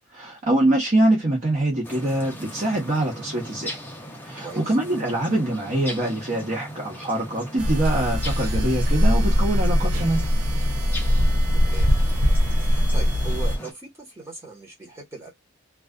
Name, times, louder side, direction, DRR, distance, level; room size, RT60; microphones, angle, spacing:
voice 1, 0.1-3.8 4.2-10.2, right 1 dB, 35° right, 0.9 m, -24 dB
sound 1, 1.8-13.7, equal, 10° left, 0.5 m, -38 dB
voice 2, 4.4-4.7 11.5-12.0 12.6-15.3, right 3 dB, 10° right, 1.0 m, -39 dB
sound 2, 7.6-13.6, equal, 85° right, 0.7 m, -21 dB
2.4 x 2.3 x 2.2 m
head